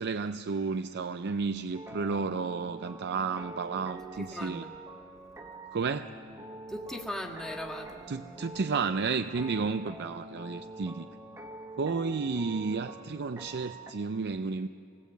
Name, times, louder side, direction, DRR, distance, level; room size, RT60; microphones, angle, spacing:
voice 1, 0.0-4.6 5.7-6.1 8.1-11.1 11.8-14.7, right 4 dB, 50° right, 10 dB, 0.5 m, -32 dB
sound 1, 1.7-13.9, right 1 dB, 15° right, 1.5 m, -45 dB
voice 2, 4.2-4.7 6.7-8.0, equal, ahead, -1 dB, 1.8 m, -38 dB
27.0 x 20.0 x 8.3 m, 2.7 s
head